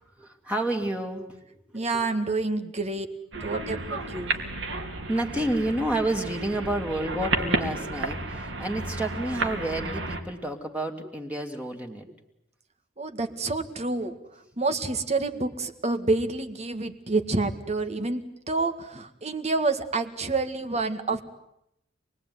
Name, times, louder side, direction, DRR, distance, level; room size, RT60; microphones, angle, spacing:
voice 1, 0.2-2.1 5.1-12.1, right 1 dB, 10° right, 2 dB, 2.6 m, -30 dB
voice 2, 1.7-3.1 3.4-4.4 13.0-14.2 14.6-21.2, right 3 dB, 35° right, 8 dB, 1.9 m, -28 dB
sound 1, 3.3-10.2, right 2 dB, 75° right, 3.1 m, -32 dB
27.5 x 20.5 x 9.6 m, 0.80 s
head